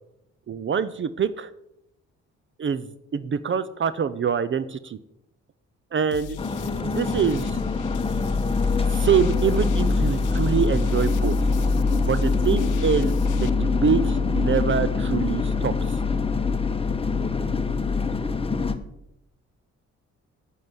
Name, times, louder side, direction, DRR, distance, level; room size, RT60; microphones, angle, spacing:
voice 1, 0.5-1.5 2.6-5.0 5.9-6.4 6.8-7.6 8.9-11.4 12.0-16.0, right 7 dB, 40° right, 15 dB, 0.7 m, -25 dB
sound 1, 6.1-13.5, left 11 dB, 80° left, 0.8 m, -39 dB
sound 2, 6.4-18.7, left 4 dB, 20° left, 1.3 m, -24 dB
9.6 x 8.8 x 8.0 m, 0.81 s
cardioid pair, 90°, 30 cm